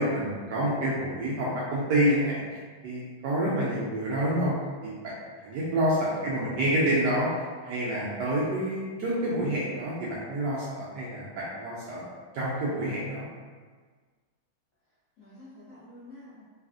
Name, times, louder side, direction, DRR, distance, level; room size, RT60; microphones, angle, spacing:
voice 1, 0.0-2.6 2.8-4.5 4.8-4.9 5.4-7.3 7.6-12.0 12.3-13.2, right 1 dB, 80° right, -7 dB, 0.9 m, -28 dB
voice 2, 6.1-7.1 15.2-16.4, left 1 dB, 60° left, -7 dB, 1.2 m, -49 dB
3.3 x 2.4 x 2.4 m, 1.5 s
omnidirectional pair, 2.3 m